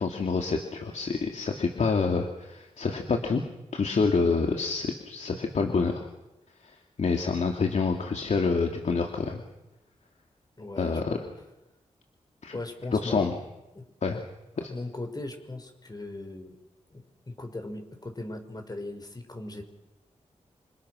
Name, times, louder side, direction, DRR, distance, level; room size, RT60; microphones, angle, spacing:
voice 1, 0.0-3.4 3.7-6.1 6.6-9.4 10.8-11.2 12.4-12.6 12.9-13.3 14.0-14.2 14.6-14.7, left 4 dB, 65° left, 3 dB, 2.8 m, -27 dB
voice 2, 10.6-11.2 12.5-13.3 13.7-14.2 14.6-16.6 16.9-19.6, left 2 dB, 30° left, 6 dB, 5.8 m, -39 dB
28.5 x 27.5 x 6.6 m, 0.96 s
cardioid pair, 65°, 13 cm